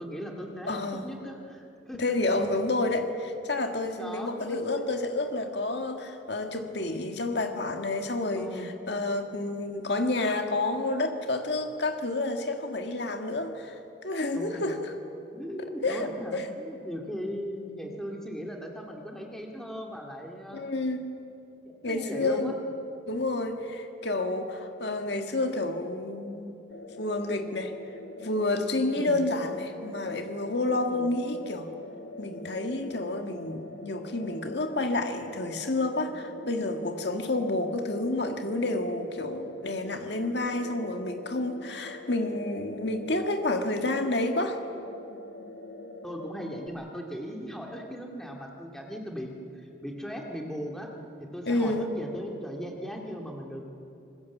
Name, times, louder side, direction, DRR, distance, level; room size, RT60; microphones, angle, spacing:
voice 1, 0.0-2.0 3.9-4.8 8.3-8.7 14.3-14.7 15.3-20.6 21.6-22.6 28.9-29.2 30.9-31.1 46.0-50.9 51.3-53.6, equal, ahead, 0 dB, 2.4 m, -38 dB
voice 2, 0.7-1.1 2.0-13.8 14.0-14.9 15.8-16.5 20.5-21.0 21.8-22.5 23.1-26.5 27.0-27.7 28.2-31.7 32.2-44.6 51.5-51.9, left 2 dB, 60° left, 5 dB, 1.9 m, -29 dB
sound 1, 26.7-46.7, left 2 dB, 80° left, 2.2 m, -44 dB
26.0 x 20.5 x 7.3 m, 2.7 s
head